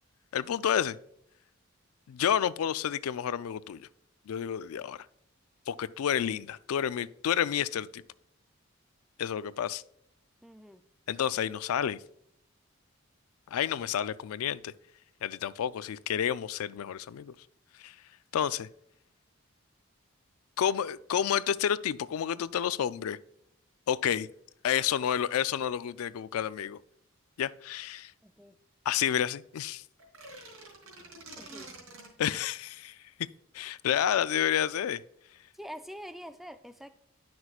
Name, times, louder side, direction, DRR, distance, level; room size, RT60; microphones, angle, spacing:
voice 1, 0.3-1.0 2.1-3.9 4.3-5.0 5.7-8.0 9.2-9.8 11.1-12.0 13.5-14.7 15.2-17.3 17.8-17.9 18.3-18.7 20.6-23.2 23.9-24.3 24.6-26.8 27.4-28.1 28.9-29.8 32.2-33.0 33.5-35.0, left 9 dB, 85° left, 0.3 m, -30 dB
voice 2, 10.4-10.8 28.2-28.5 31.4-31.7 35.5-36.9, equal, ahead, 0.3 m, -45 dB
sound 1, 30.0-32.4, right 2 dB, 75° right, 3.1 m, -47 dB
11.0 x 6.0 x 2.4 m
head